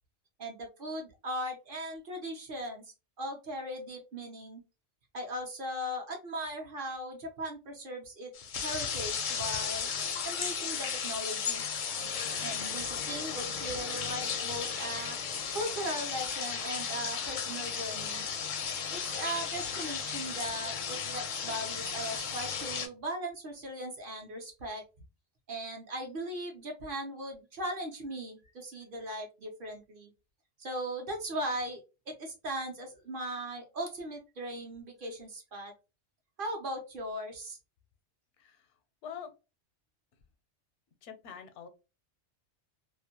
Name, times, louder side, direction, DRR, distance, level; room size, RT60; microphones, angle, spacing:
voice 1, 0.4-4.6 5.1-9.9 10.2-11.6 12.4-15.2 15.5-18.3 18.9-24.8 25.5-30.1 30.6-31.8 32.1-35.7 36.4-37.6, right 1 dB, 55° right, 2 dB, 0.8 m, -38 dB
sound 1, 8.3-22.9, left 6 dB, 60° left, 0.5 m, -35 dB
voice 2, 38.4-38.7 39.0-39.3 41.0-41.7, left 8 dB, 85° left, 9 dB, 0.9 m, -44 dB
2.5 x 2.1 x 2.8 m, 0.29 s
omnidirectional pair, 1.2 m